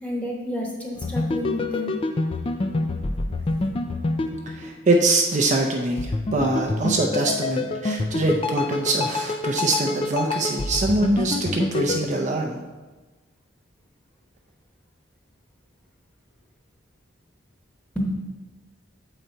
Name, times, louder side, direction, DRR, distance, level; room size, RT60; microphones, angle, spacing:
voice 1, 0.0-2.0 3.1-3.8 17.9-18.1, left 1 dB, 5° left, -2 dB, 1.0 m, -30 dB
sound 1, 0.9-5.2 6.0-12.1, left 2 dB, 25° left, 0.3 m, -27 dB
voice 2, 4.5-12.6, right 2 dB, 35° right, 1 dB, 0.5 m, -23 dB
7.4 x 4.0 x 4.4 m, 1.2 s
head